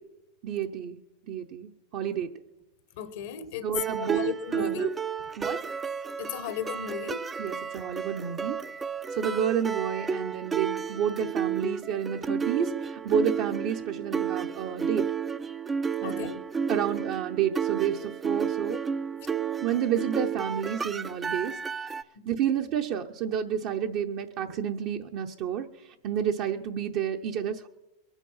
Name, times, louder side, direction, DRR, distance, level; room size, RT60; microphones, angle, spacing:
voice 1, 0.4-1.0 1.3-2.3 3.6-4.9 5.4-5.7 7.4-8.6 9.1-15.1 16.0-16.4 16.7-18.8 19.6-21.6 22.3-27.7, right 8 dB, 55° right, 0.8 m, -30 dB
voice 2, 3.0-3.7 4.0-4.9 6.2-7.2 16.0-16.4 22.1-22.5, left 8 dB, 70° left, 1.2 m, -36 dB
sound 1, 3.7-22.0, right 6 dB, 20° right, 0.4 m, -32 dB
22.0 x 8.2 x 5.6 m
hypercardioid pair, 110°, 0 cm